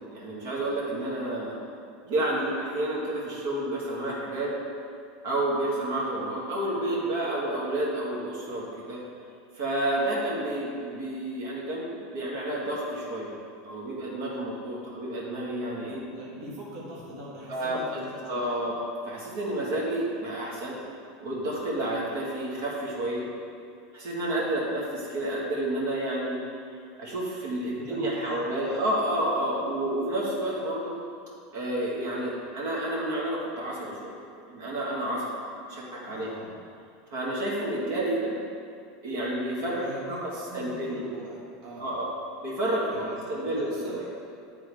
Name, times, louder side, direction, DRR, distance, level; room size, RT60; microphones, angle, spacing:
voice 1, 0.1-1.6 2.0-4.5 5.2-9.0 9.5-13.3 13.6-16.0 17.5-17.8 18.3-18.8 19.0-20.8 21.2-23.3 23.9-26.4 27.0-30.9 31.5-34.1 34.5-35.3 35.7-36.3 37.1-38.4 39.0-41.0 41.8-42.1 42.4-44.0, right 1 dB, 65° right, -5 dB, 1.7 m, -30 dB
voice 2, 16.1-18.5 27.8-28.8 36.0-36.6 39.7-40.2 40.5-41.9 42.9-44.0, right 1 dB, 50° right, -6 dB, 1.7 m, -42 dB
9.3 x 3.8 x 4.8 m, 2.4 s
supercardioid pair, 160°, 0 cm